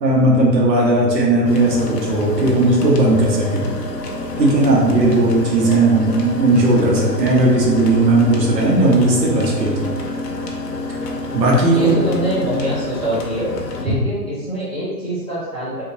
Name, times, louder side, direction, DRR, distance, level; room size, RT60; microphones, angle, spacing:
voice 1, 0.0-3.8 4.4-9.9 11.3-11.9, right 2 dB, 85° right, -3 dB, 1.1 m, -16 dB
sound 1, 1.4-13.9, left 2 dB, 80° left, 0.8 m, -28 dB
voice 2, 11.7-13.5 13.8-15.8, right 1 dB, 5° left, -17 dB, 0.9 m, -24 dB
3.6 x 2.5 x 2.8 m, 1.3 s
hypercardioid pair, 175°, 49 cm